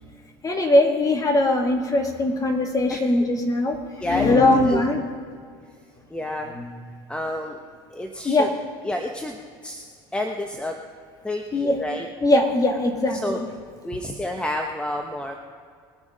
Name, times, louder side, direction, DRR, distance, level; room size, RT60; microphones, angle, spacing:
voice 1, 0.4-5.0 6.5-6.7 8.2-8.5 11.5-11.8 12.2-13.5, left 2 dB, 30° left, 3 dB, 2.4 m, -21 dB
voice 2, 4.0-4.4 4.7-4.8 6.1-6.6 7.1-7.6 7.9-8.5 8.8-9.9 10.1-10.8 11.2-12.1 13.2-13.4 13.8-15.4, left 1 dB, 10° left, 3 dB, 1.0 m, -29 dB
21.0 x 7.2 x 5.2 m, 2.1 s
hypercardioid pair, 85°, 13 cm